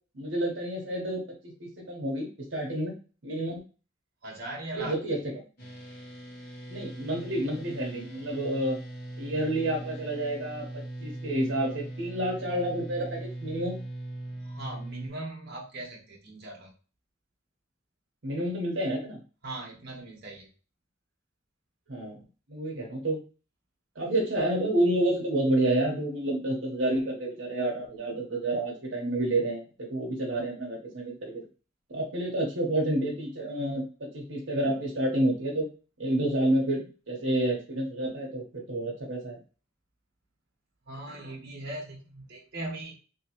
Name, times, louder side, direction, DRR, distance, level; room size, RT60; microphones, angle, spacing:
voice 1, 0.1-2.9 3.2-3.6 4.7-5.2 6.7-8.8 9.2-10.6 11.0-13.8 18.2-19.2 21.9-22.2 22.5-23.2 24.0-29.6 29.9-31.4 31.9-33.8 34.1-35.7 36.0-39.4, right 1 dB, 80° right, -1 dB, 1.1 m, -29 dB
voice 2, 4.2-5.0 14.4-16.7 19.4-20.5 40.9-42.9, right 2 dB, 55° right, -3 dB, 1.1 m, -39 dB
sound 1, 5.6-15.1, right 1 dB, 55° left, 1.8 m, -40 dB
3.4 x 3.0 x 2.9 m, 0.36 s
head